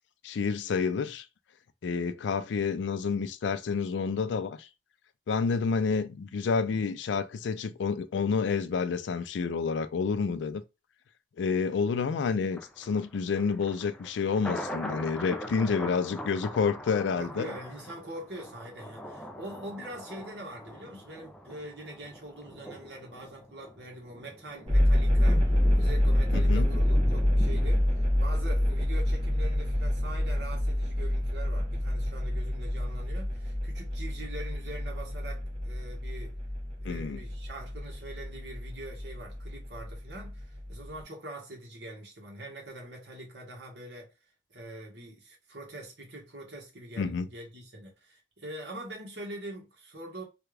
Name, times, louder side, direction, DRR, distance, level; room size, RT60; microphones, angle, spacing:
voice 1, 0.2-1.3 1.8-4.7 5.3-10.6 11.4-17.5 26.3-26.7 36.8-37.2 47.0-47.3, left 5 dB, 80° left, 0.4 m, -29 dB
Thunder, 12.5-29.6 30.0-30.1, equal, 5° left, 0.3 m, -42 dB
voice 2, 17.1-36.3 36.8-44.1 44.5-50.2, right 1 dB, 65° right, 1.4 m, -44 dB
sound 1, 24.7-41.0, left 1 dB, 30° right, 1.0 m, -27 dB
3.3 x 2.3 x 3.2 m
head